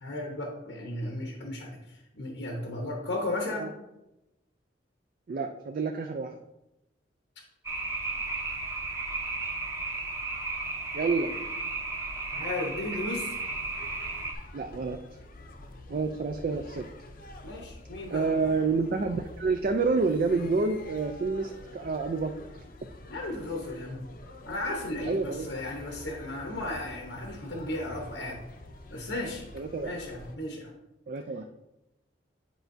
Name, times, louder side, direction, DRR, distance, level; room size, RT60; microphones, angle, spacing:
voice 1, 0.0-3.7 12.3-13.3 17.4-18.3 23.1-24.1 24.4-28.4 28.9-29.4 29.8-30.7, left 1 dB, 85° left, 0 dB, 1.0 m, -35 dB
voice 2, 5.3-6.4 10.9-11.3 14.5-15.0 15.9-16.9 18.1-22.3 25.1-25.5 29.5-29.9 31.1-31.4, right 4 dB, 50° right, 6 dB, 0.4 m, -28 dB
sound 1, 7.6-14.3, right 3 dB, 15° right, 0.8 m, -34 dB
sound 2, 13.4-30.4, left 1 dB, 50° left, 0.6 m, -47 dB
9.3 x 4.4 x 2.6 m, 0.94 s
head